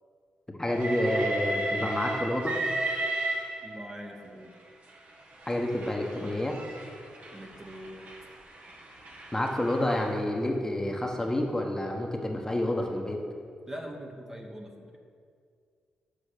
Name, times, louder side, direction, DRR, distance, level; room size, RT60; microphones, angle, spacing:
voice 1, 0.5-2.5 5.5-6.6 9.3-13.2, left 1 dB, 15° left, 1 dB, 1.1 m, -29 dB
Train, 0.6-4.0 4.9-10.1, right 1 dB, 50° right, 1.3 m, -35 dB
voice 2, 3.6-4.6 7.3-8.1 13.7-15.0, equal, 15° right, 1 dB, 1.1 m, -42 dB
6.5 x 4.8 x 6.7 m, 2.2 s
supercardioid pair, 50°, 3 cm